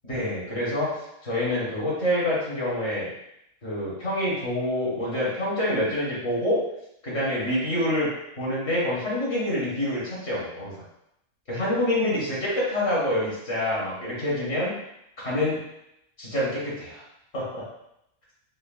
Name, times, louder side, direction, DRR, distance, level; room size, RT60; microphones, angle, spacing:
voice 1, 0.0-3.1 3.6-6.6 7.0-8.1 8.4-10.7 11.5-14.7 15.2-15.6 16.2-17.0 17.3-17.7, left 1 dB, 55° left, -6 dB, 1.7 m, -26 dB
4.2 x 3.3 x 2.4 m, 0.80 s
omnidirectional pair, 1.3 m